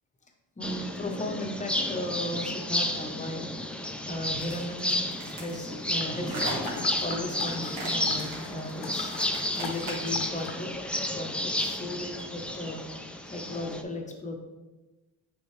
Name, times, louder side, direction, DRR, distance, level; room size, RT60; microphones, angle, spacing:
voice 1, 0.6-3.5 4.0-6.5 7.0-9.1 9.6-10.7 11.0-12.8 13.2-14.4, left 1 dB, 20° left, 2 dB, 0.8 m, -36 dB
sound 1, 0.6-13.8, left 1 dB, 5° left, 0.3 m, -32 dB
sound 2, 4.4-10.3, right 1 dB, 65° right, 2.0 m, -40 dB
sound 3, 6.0-10.6 11.0-11.1, left 6 dB, 70° left, 0.8 m, -41 dB
9.1 x 3.6 x 3.2 m, 1.1 s
cardioid pair, 140°, 39 cm